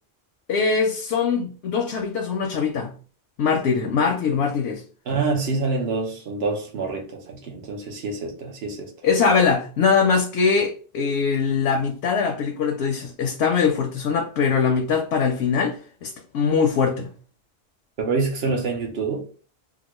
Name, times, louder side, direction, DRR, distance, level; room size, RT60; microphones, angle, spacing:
voice 1, 0.5-2.9 3.4-4.8 9.0-17.1, left 5 dB, 85° left, 0.9 m, -22 dB
voice 2, 5.1-8.9 18.0-19.2, right 4 dB, 70° right, 1.0 m, -26 dB
2.9 x 2.4 x 3.0 m
omnidirectional pair, 1.1 m